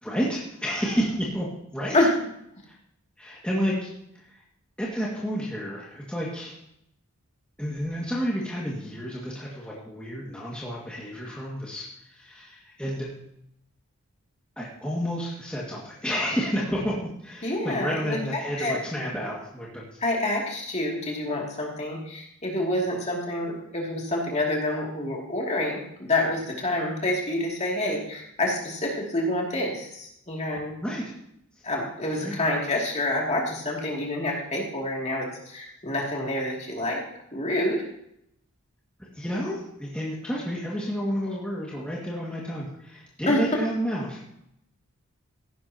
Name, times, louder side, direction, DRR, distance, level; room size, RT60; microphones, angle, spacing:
voice 1, 0.0-1.9 3.2-4.4 4.8-6.6 7.6-13.1 14.6-16.9 17.2-20.0 30.8-31.2 32.2-32.4 39.0-44.4, equal, 5° left, -5 dB, 2.0 m, -30 dB
voice 2, 17.4-18.8 20.0-25.8 26.1-30.7 31.6-37.0 37.3-37.8 43.3-43.4, left 1 dB, 30° left, -2 dB, 2.6 m, -27 dB
15.5 x 12.0 x 2.9 m, 0.76 s
head